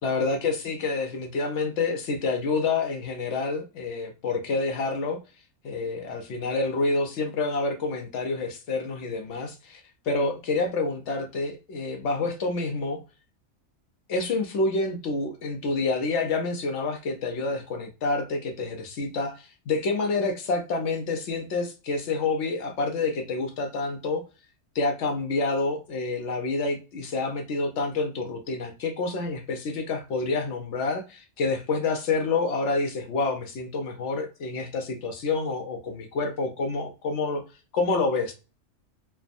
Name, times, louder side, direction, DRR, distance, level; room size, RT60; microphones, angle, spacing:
voice 1, 0.0-5.2 5.6-9.8 10.1-13.0 14.1-19.4 19.7-24.2 24.8-37.4 37.7-38.3, left 3 dB, 70° left, 0.9 m, -28 dB
3.3 x 2.1 x 2.5 m
omnidirectional pair, 1.3 m